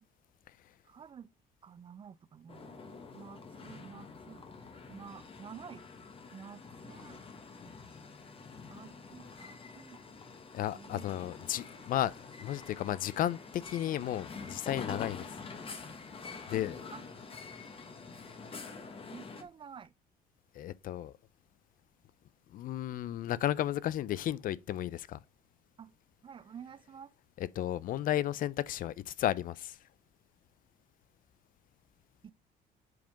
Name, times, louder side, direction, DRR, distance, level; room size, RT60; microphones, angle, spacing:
voice 1, 0.8-1.3 1.6-4.4 4.9-5.8 6.3-7.2 8.7-10.0 10.7-11.1 11.7-11.8 14.0-14.1 16.9-17.0 19.1-19.9 25.8-25.9 26.2-27.1 32.2-32.3, right 7 dB, 30° right, 0.4 m, -50 dB
sound 1, 2.5-19.4, left 4 dB, 35° left, 1.1 m, -47 dB
voice 2, 10.5-12.1 12.4-15.3 16.5-16.8 20.6-21.1 22.5-25.2 27.4-29.8, left 12 dB, 55° left, 0.4 m, -33 dB
7.6 x 3.6 x 5.1 m
cardioid pair, 110°, 17 cm